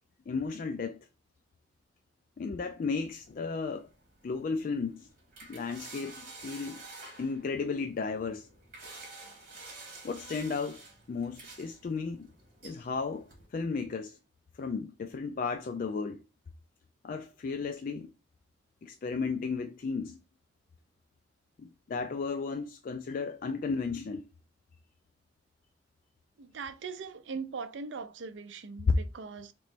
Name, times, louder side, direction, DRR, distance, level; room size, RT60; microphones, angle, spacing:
voice 1, 0.3-1.0 2.4-3.9 4.2-5.1 5.5-6.1 6.4-6.8 7.2-8.5 10.0-10.8 11.1-12.3 12.6-14.2 14.6-16.2 17.0-18.1 18.8-20.2 21.6-24.2 28.9-29.0, left 4 dB, 45° left, 0.3 m, -33 dB
sound 1, 2.9-13.4, right 3 dB, 50° right, 1.7 m, -50 dB
voice 2, 26.4-29.5, right 5 dB, 75° right, 0.5 m, -40 dB
3.0 x 3.0 x 4.3 m
head